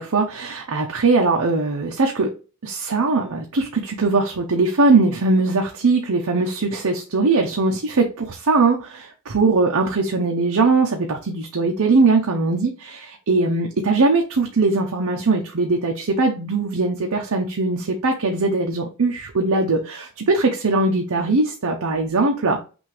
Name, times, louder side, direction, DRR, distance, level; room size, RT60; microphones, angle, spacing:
voice 1, 0.0-2.3 2.6-22.6, right 3 dB, 80° right, 1 dB, 0.8 m, -20 dB
6.1 x 2.6 x 3.3 m, 0.33 s
head